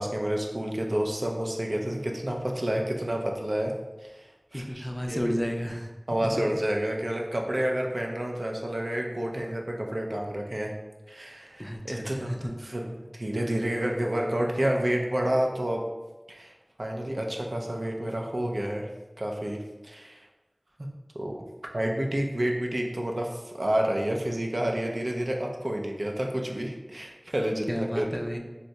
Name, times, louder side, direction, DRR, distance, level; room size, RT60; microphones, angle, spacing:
voice 1, 0.0-3.7 4.0-5.3 6.1-10.7 11.1-15.8 16.3-16.5 16.8-18.9 19.2-19.6 19.8-20.2 21.1-21.4 21.7-28.1, right 1 dB, 70° right, 1 dB, 0.4 m, -29 dB
voice 2, 4.5-5.9 11.6-12.6 27.7-28.4, equal, 10° left, 2 dB, 0.4 m, -32 dB
2.7 x 2.2 x 4.0 m, 1.1 s
wide cardioid pair, 40°, 0 cm